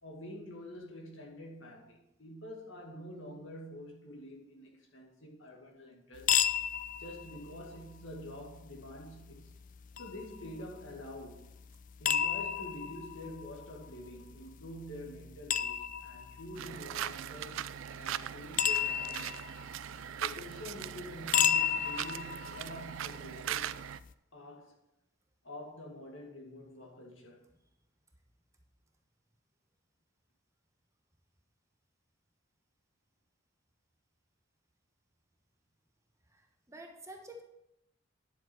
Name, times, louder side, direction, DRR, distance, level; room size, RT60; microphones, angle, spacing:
voice 1, 0.0-6.4 7.0-9.6 10.0-11.5 12.0-17.6 18.0-19.5 20.2-23.8 24.3-24.8 25.4-27.4, left 1 dB, 70° left, 2.1 m, -47 dB
sound 1, 6.2-24.1, left 8 dB, 40° left, 0.4 m, -35 dB
sound 2, 16.6-24.0, right 11 dB, 75° right, 0.3 m, -40 dB
voice 2, 36.3-37.4, right 1 dB, 15° right, 1.3 m, -49 dB
10.5 x 7.1 x 4.6 m
head